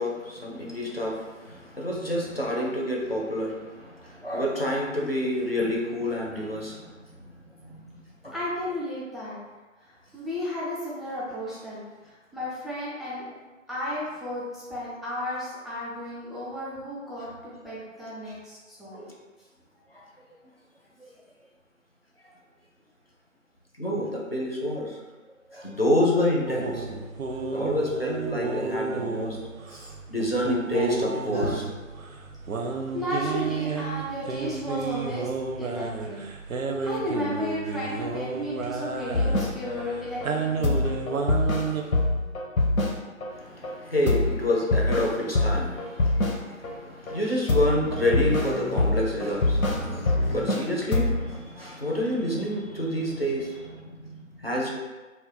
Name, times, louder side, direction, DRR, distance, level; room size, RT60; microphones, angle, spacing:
voice 1, 0.0-7.9 8.2-8.3 18.9-19.2 19.9-20.0 21.0-21.1 23.8-25.0 25.5-26.9 27.5-29.4 29.7-31.7 43.3-54.7, left 1 dB, 45° left, -3 dB, 0.5 m, -28 dB
voice 2, 8.3-9.4 9.8-13.3 13.7-19.0 32.9-36.2 36.5-40.9, left 1 dB, ahead, -9 dB, 0.5 m, -34 dB
sound 1, 26.5-41.8, right 4 dB, 80° right, 0.5 m, -32 dB
sound 2, 39.1-39.9 40.2-40.3 40.6-43.3 43.6-43.7 44.1-46.7 47.1-50.6 50.9-51.4, left 2 dB, 85° left, 0.7 m, -25 dB
2.4 x 2.1 x 3.7 m, 1.2 s
figure-of-eight pair, 175°, 40 cm